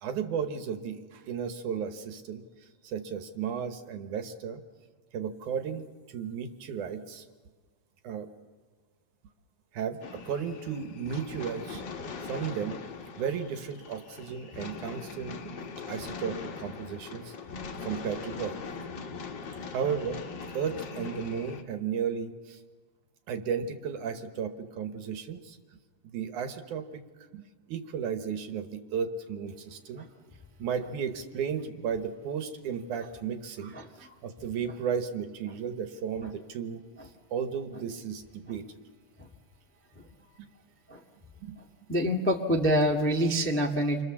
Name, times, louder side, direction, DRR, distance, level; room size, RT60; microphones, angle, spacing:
voice 1, 0.0-4.6 5.1-7.3 8.0-8.3 9.7-11.8 12.2-12.8 13.2-15.5 15.9-17.3 17.8-18.6 19.7-20.2 20.5-22.6 23.3-25.6 26.1-27.0 27.3-30.1 30.6-36.8 37.3-38.8 40.4-40.5 41.4-41.6, right 7 dB, 65° right, 8 dB, 2.6 m, -34 dB
sound 1, 10.0-21.6, left 5 dB, 60° left, 1.2 m, -41 dB
voice 2, 41.9-44.0, equal, 15° left, 1 dB, 0.4 m, -26 dB
28.5 x 24.0 x 7.3 m, 1.4 s
omnidirectional pair, 4.0 m